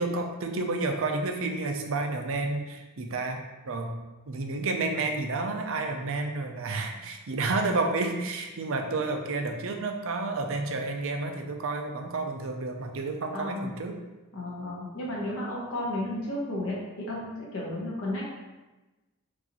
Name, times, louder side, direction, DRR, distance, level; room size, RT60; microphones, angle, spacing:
voice 1, 0.0-3.4 3.7-3.9 4.3-14.0, right 3 dB, 60° right, 4 dB, 0.5 m, -30 dB
voice 2, 13.3-13.7 14.3-18.3, left 1 dB, 65° left, -5 dB, 1.0 m, -33 dB
6.0 x 2.7 x 2.9 m, 1.1 s
head